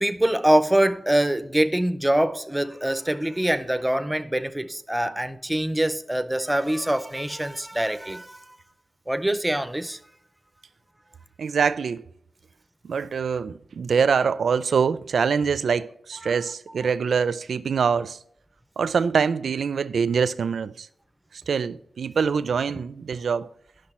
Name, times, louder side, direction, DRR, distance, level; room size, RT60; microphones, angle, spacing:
voice 1, 0.0-8.6 9.1-10.0 16.2-16.4, right 1 dB, 5° right, 0.5 m, -24 dB
voice 2, 11.4-12.0 12.8-18.2 18.8-20.9 21.5-23.5, right 6 dB, 85° right, 0.4 m, -24 dB
10.0 x 6.4 x 4.3 m
wide cardioid pair, 170°, 0 cm